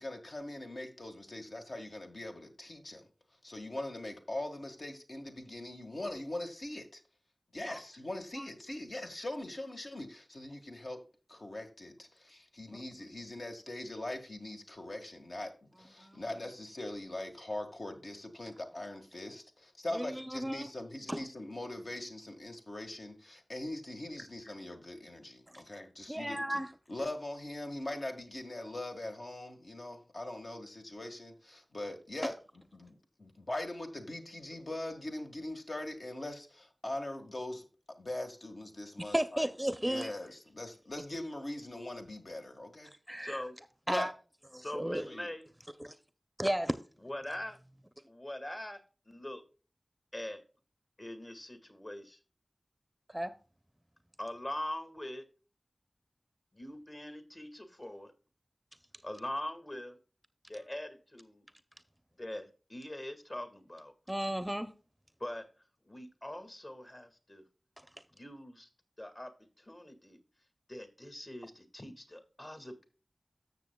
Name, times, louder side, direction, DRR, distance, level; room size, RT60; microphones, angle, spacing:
voice 1, 0.0-3.1 3.4-7.0 7.5-11.0 11.3-26.6 26.9-39.5 39.8-42.9 43.9-44.1 45.1-45.3, left 1 dB, 65° left, 1.6 m, -41 dB
voice 2, 19.9-20.7 21.1-21.2 25.5-25.6 26.1-26.7 39.1-40.1 43.1-43.4 43.9-44.1 44.5-45.1 45.8-46.0 46.4-46.8 53.1-53.3 64.1-64.7, right 1 dB, 10° right, 0.6 m, -33 dB
voice 3, 43.2-43.6 44.6-45.5 47.0-47.6 48.1-48.8 49.1-49.4 50.1-50.4 51.0-52.2 54.2-55.2 56.5-58.1 59.0-60.0 60.5-61.5 62.2-63.9 65.2-65.5 65.8-67.4 68.1-68.7 69.0-69.3 69.6-70.2 70.7-72.9, left 1 dB, 40° left, 1.9 m, -42 dB
13.5 x 6.8 x 2.2 m
wide cardioid pair, 55°, 0 cm